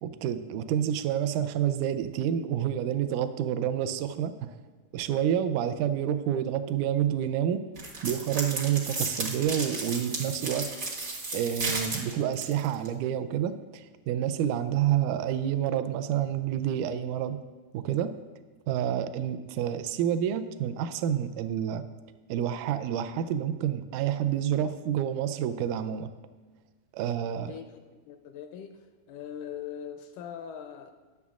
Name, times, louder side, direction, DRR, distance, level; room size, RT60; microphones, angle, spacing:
voice 1, 0.0-4.6 4.9-7.6 8.0-10.7 11.3-17.4 17.7-18.1 18.7-21.8 22.3-26.1 26.9-27.5, right 10 dB, 80° right, 1.8 m, -28 dB
sound 1, 7.8-12.9, right 3 dB, 45° right, 1.1 m, -34 dB
voice 2, 27.4-27.8 28.1-28.8 29.1-30.9, left 8 dB, 80° left, 1.9 m, -41 dB
20.5 x 7.0 x 2.4 m
omnidirectional pair, 4.0 m